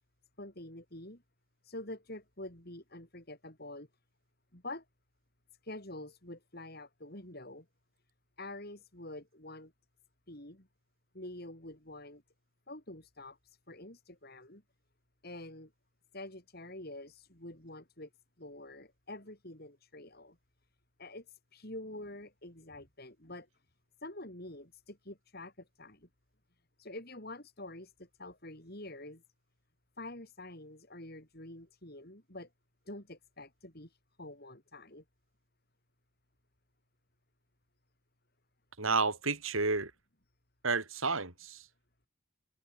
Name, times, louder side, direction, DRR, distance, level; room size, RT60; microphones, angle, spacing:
voice 1, 0.4-1.2 1.6-3.9 4.5-4.8 5.6-7.7 8.4-9.7 10.3-10.7 11.1-12.2 12.7-14.6 15.2-15.7 16.1-18.1 18.4-20.4 21.0-23.6 24.0-26.1 26.8-29.2 30.0-32.5 32.9-35.0, left 1 dB, 45° left, 4.9 m, -47 dB
voice 2, 38.8-39.9 40.6-41.6, right 4 dB, 75° right, 4.9 m, -31 dB
head